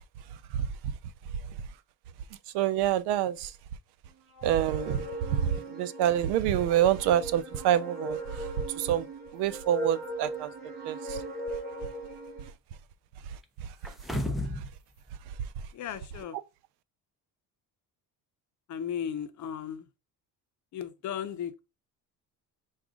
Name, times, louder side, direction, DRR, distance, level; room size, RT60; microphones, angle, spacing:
voice 1, 2.5-3.5 4.4-5.1 5.3-5.4 5.8-8.2 8.8-9.0 9.3-10.5 10.9-11.0, right 11 dB, 90° right, 0.6 m, -26 dB
sound 1, 4.3-12.5, right 2 dB, 45° right, 2.8 m, -38 dB
sound 2, 13.8-14.7 15.1-15.2, left 1 dB, ahead, 0.4 m, -32 dB
voice 2, 15.7-16.4 18.7-19.8 20.7-21.6, left 8 dB, 45° left, 0.7 m, -35 dB
6.0 x 2.4 x 3.6 m
cardioid pair, 135°, 39 cm